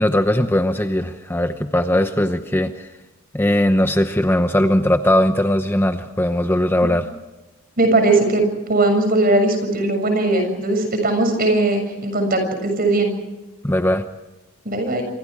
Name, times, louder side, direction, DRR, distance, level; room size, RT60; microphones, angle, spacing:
voice 1, 0.0-2.9 3.3-7.1 13.6-14.0, left 1 dB, 10° left, 7 dB, 0.9 m, -19 dB
voice 2, 7.8-13.1 14.6-15.0, right 2 dB, 45° right, 6 dB, 6.9 m, -19 dB
27.0 x 26.0 x 4.8 m, 1.1 s
head